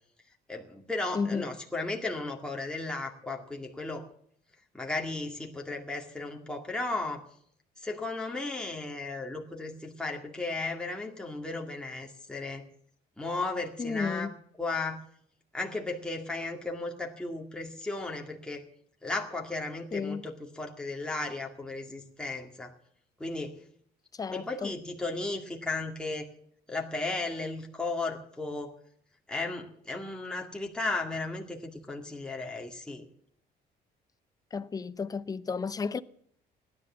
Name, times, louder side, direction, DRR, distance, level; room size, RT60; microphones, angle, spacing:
voice 1, 0.5-4.1 4.7-7.2 7.8-12.6 13.2-14.3 14.6-15.0 15.5-18.6 19.0-22.7 23.2-23.5 24.3-26.3 26.7-28.7 29.3-33.1, left 3 dB, 5° left, 2.0 m, -35 dB
voice 2, 1.1-1.4 13.8-14.3 19.9-20.3 24.1-24.7 34.5-36.0, left 5 dB, 20° left, 0.6 m, -32 dB
16.0 x 11.0 x 7.3 m
cardioid pair, 110°, 17 cm